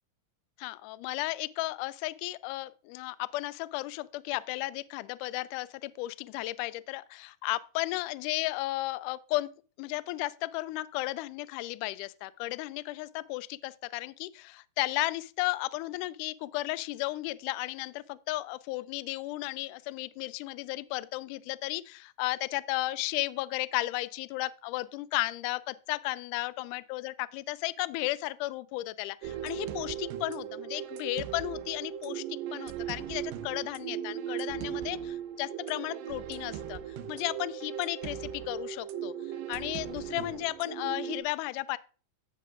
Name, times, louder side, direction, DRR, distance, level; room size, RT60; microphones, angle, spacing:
voice 1, 0.6-9.5 9.8-36.8 37.1-39.1 39.5-41.8, left 19 dB, 80° left, 1.9 m, -34 dB
sound 1, 29.2-41.2, right 9 dB, 85° right, 2.4 m, -38 dB
16.0 x 6.6 x 2.5 m
omnidirectional pair, 3.9 m